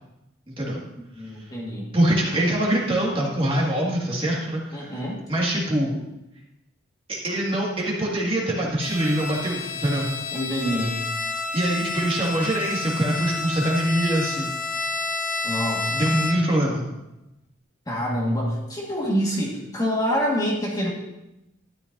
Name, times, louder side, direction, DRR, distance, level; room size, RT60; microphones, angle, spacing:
voice 1, 0.9-2.0 4.7-5.2 10.3-11.0 15.4-16.2 17.9-20.9, equal, 20° left, -4 dB, 1.7 m, -26 dB
voice 2, 1.9-4.9 5.3-6.0 7.1-10.1 11.5-14.5 15.9-16.8, right 1 dB, 25° right, -3 dB, 2.0 m, -24 dB
Bowed string instrument, 8.8-16.6, left 3 dB, 40° left, 0.6 m, -30 dB
12.5 x 10.5 x 2.7 m, 0.90 s
head